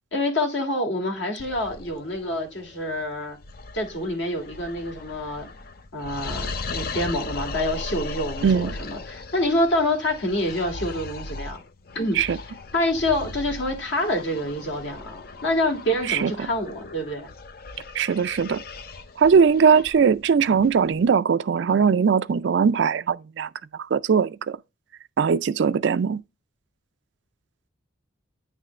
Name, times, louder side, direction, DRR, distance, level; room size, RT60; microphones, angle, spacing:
voice 1, 0.1-3.4 3.7-5.5 5.9-11.6 11.9-12.2 12.7-17.3, left 1 dB, 65° left, 2.1 m, -27 dB
sound 1, 1.4-21.1, left 3 dB, 45° left, 0.5 m, -38 dB
voice 2, 8.4-8.7 12.2-12.4 16.1-16.3 17.9-18.6 19.2-23.5 23.9-24.6 25.2-26.2, right 6 dB, 60° right, 0.4 m, -20 dB
9.3 x 3.7 x 3.2 m
head